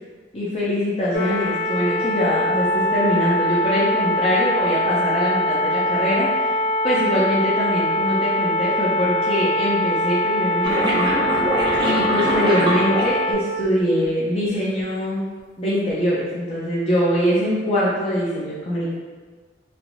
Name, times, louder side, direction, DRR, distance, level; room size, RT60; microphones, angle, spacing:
voice 1, 0.3-6.6 6.8-11.2 11.8-15.3 15.6-18.9, equal, 30° left, -8 dB, 0.5 m, -23 dB
sound 1, 1.1-13.3, left 1 dB, 70° left, 0.8 m, -22 dB
sound 2, 10.6-13.6 14.4-14.9, right 1 dB, 25° right, 0.4 m, -23 dB
3.2 x 2.6 x 2.5 m, 1.4 s
head